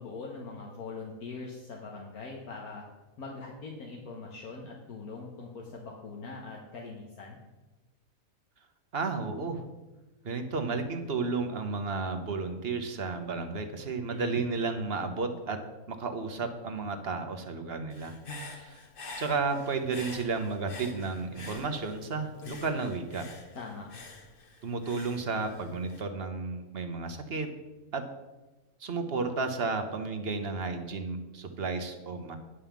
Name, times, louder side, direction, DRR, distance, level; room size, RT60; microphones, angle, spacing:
voice 1, 0.0-2.9 3.2-7.4 14.1-14.4 23.5-23.9, left 4 dB, 75° left, -1 dB, 1.6 m, -42 dB
voice 2, 8.9-9.6 10.2-15.6 15.9-18.1 18.5-18.8 19.2-23.2 24.6-27.5 27.9-28.0 28.8-32.4, right 4 dB, 45° right, 6 dB, 1.1 m, -32 dB
Human voice / Breathing, 17.9-22.1 22.4-26.0, left 2 dB, 40° left, 1.2 m, -46 dB
10.0 x 5.5 x 7.1 m, 1.1 s
omnidirectional pair, 1.6 m